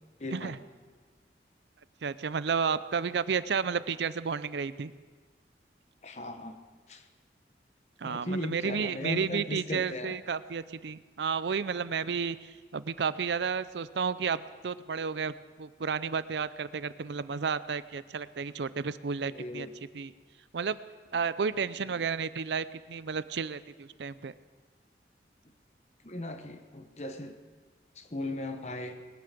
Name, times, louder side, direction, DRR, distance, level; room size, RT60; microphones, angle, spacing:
voice 1, 0.2-0.6 6.0-6.6 6.9-7.0 8.0-10.2 19.3-19.7 21.8-22.0 26.0-27.3 27.9-29.0, left 1 dB, 40° left, 7 dB, 1.1 m, -37 dB
voice 2, 2.0-4.9 8.0-19.7 19.9-20.1 20.5-20.8 21.1-24.3, right 6 dB, 80° right, 16 dB, 0.5 m, -32 dB
20.0 x 9.5 x 6.7 m, 1.4 s
head